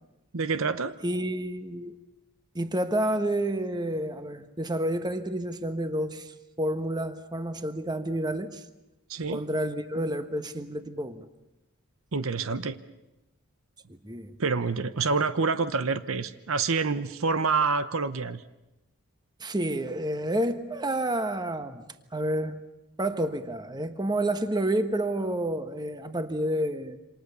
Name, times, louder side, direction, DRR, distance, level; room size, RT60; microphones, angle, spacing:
voice 1, 0.3-0.9 9.1-9.4 12.1-12.8 14.4-18.4, right 4 dB, 65° right, 0.9 m, -27 dB
voice 2, 1.0-1.9 2.5-8.6 9.3-11.3 14.0-14.4 19.4-21.8 22.1-22.6 23.0-27.0, right 1 dB, 20° right, 1.3 m, -29 dB
27.5 x 26.5 x 6.9 m
head